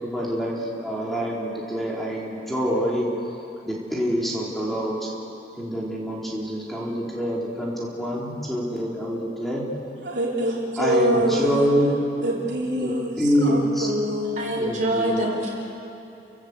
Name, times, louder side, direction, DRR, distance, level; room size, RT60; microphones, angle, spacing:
voice 1, 0.0-3.0 3.6-5.1 5.6-9.6 10.8-11.9 12.8-12.9 13.2-13.9 14.6-15.4, equal, ahead, -5 dB, 3.7 m, -26 dB
voice 2, 10.0-11.7 12.2-14.7, right 1 dB, 75° right, -3 dB, 3.4 m, -25 dB
voice 3, 14.4-15.5, right 1 dB, 45° right, -1 dB, 5.2 m, -25 dB
30.0 x 16.5 x 8.1 m, 2.8 s
head